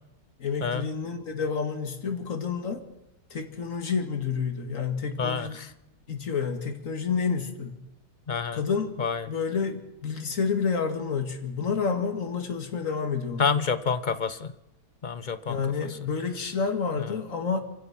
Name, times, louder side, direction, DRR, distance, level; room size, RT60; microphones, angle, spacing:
voice 1, 0.4-2.8 3.3-5.6 6.1-7.8 8.5-8.9 9.3-13.6 15.5-17.6, left 5 dB, 55° left, 6 dB, 2.4 m, -29 dB
voice 2, 5.2-5.7 8.3-8.6 9.0-9.3 13.4-14.5 15.0-15.6, left 5 dB, 35° left, 13 dB, 0.9 m, -28 dB
27.0 x 16.0 x 6.0 m, 0.93 s
omnidirectional pair, 1.7 m